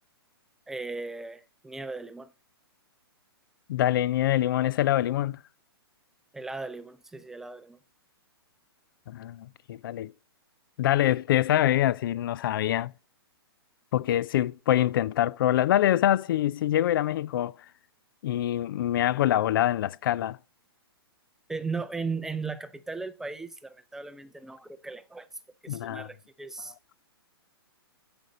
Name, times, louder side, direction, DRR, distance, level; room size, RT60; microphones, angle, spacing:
voice 1, 0.7-2.3 6.3-7.8 21.5-25.3 25.6-26.9, right 4 dB, 5° right, 0.5 m, -37 dB
voice 2, 3.7-5.4 9.1-10.1 10.8-12.9 13.9-17.5 18.2-20.4 25.7-26.1, left 12 dB, 60° left, 0.4 m, -25 dB
8.3 x 5.1 x 5.2 m
hypercardioid pair, 135°, 13 cm